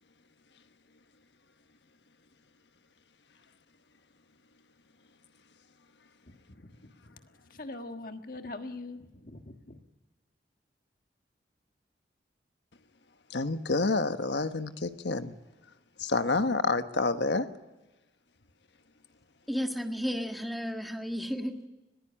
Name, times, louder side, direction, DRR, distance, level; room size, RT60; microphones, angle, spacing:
voice 1, 6.3-7.1 7.5-9.8, left 2 dB, 50° left, 6 dB, 1.6 m, -43 dB
voice 2, 13.3-15.3 16.0-17.5, left 3 dB, 85° left, 9 dB, 1.3 m, -28 dB
voice 3, 19.5-21.7, equal, ahead, 4 dB, 1.6 m, -33 dB
21.0 x 15.5 x 10.0 m, 1.1 s
head